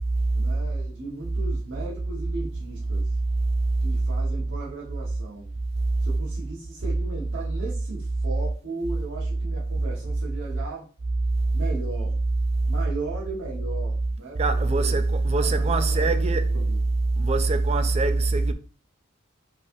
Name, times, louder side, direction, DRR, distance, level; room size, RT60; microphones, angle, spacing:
voice 1, 0.3-3.1 3.8-5.5 6.0-10.9 11.5-12.2 12.7-15.0 15.4-16.2 16.5-16.8, right 3 dB, 60° right, 1.3 m, -37 dB
voice 2, 14.4-16.6 17.2-18.5, right 3 dB, 30° right, 0.4 m, -22 dB
5.3 x 3.2 x 2.6 m
head